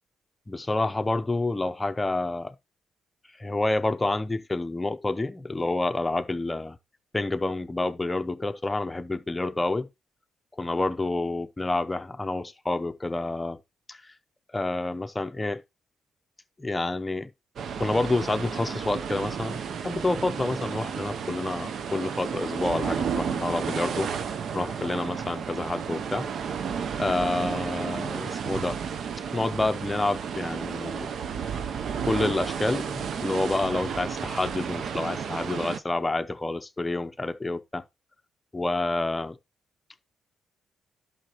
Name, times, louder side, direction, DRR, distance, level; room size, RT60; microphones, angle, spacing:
voice 1, 0.5-2.5 3.4-6.8 7.1-9.9 10.6-13.6 13.9-14.1 14.5-15.6 16.6-17.3 17.8-24.1 24.5-26.3 27.0-28.8 29.3-31.1 32.0-37.8 38.5-39.4, left 2 dB, 15° left, 0.7 m, -28 dB
sound 1, 17.6-35.8, right 7 dB, 60° right, 0.6 m, -32 dB
11.0 x 5.7 x 2.9 m
cardioid pair, 90°, 0 cm